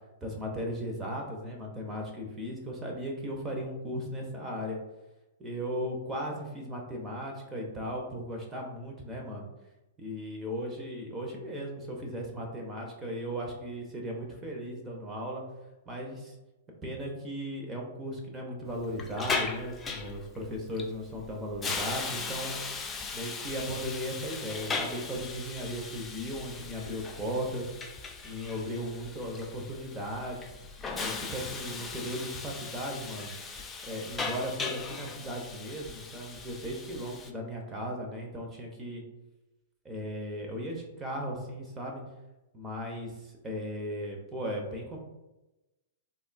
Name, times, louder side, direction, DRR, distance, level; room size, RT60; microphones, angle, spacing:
voice 1, 0.2-4.8 5.4-9.5 10.0-15.4 15.9-16.4 16.8-22.6 23.1-27.7 28.2-30.5 31.0-33.3 33.8-39.0 39.8-42.0 42.5-45.0, equal, 15° right, 0 dB, 0.7 m, -36 dB
Hiss, 18.7-37.3, left 4 dB, 15° left, 0.3 m, -38 dB
3.5 x 2.3 x 2.2 m, 1.0 s
hypercardioid pair, 115°, 0 cm